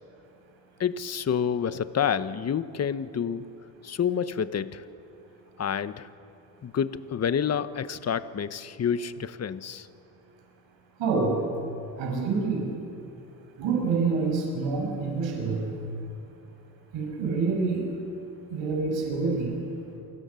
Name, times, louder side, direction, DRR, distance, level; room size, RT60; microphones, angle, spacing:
voice 1, 0.8-3.4 3.8-4.8 5.6-6.1 6.6-9.9, left 7 dB, 35° left, 13 dB, 1.0 m, -28 dB
voice 2, 11.0-11.4 12.0-12.7 13.6-15.7 16.9-17.9 18.5-19.5, right 4 dB, 80° right, 0 dB, 6.2 m, -27 dB
29.0 x 24.0 x 7.0 m, 2.9 s
cardioid pair, 100°, 44 cm